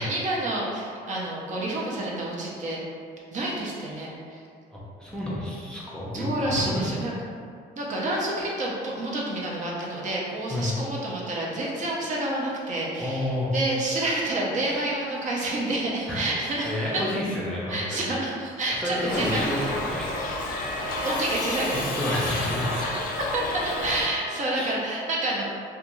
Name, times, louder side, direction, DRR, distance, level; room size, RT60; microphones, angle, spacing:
voice 1, 0.0-2.8 3.3-4.4 6.1-7.1 7.8-17.0 17.7-19.7 21.0-22.5 23.3-25.4, right 1 dB, 45° right, -4 dB, 0.6 m, -29 dB
voice 2, 4.7-6.9 10.5-10.7 13.0-13.5 14.6-14.8 16.1-16.3 16.6-18.1 18.7-20.2 20.4-20.7 21.7-22.9 24.5-24.8, left 1 dB, 5° left, -7 dB, 0.5 m, -30 dB
Trumpet, 18.6-24.5, right 2 dB, 75° right, 0.8 m, -39 dB
Shout / Livestock farm animals working animals, 19.1-24.1, left 3 dB, 55° left, 0.4 m, -31 dB
2.4 x 2.3 x 2.9 m, 2.3 s
cardioid pair, 110°, 17 cm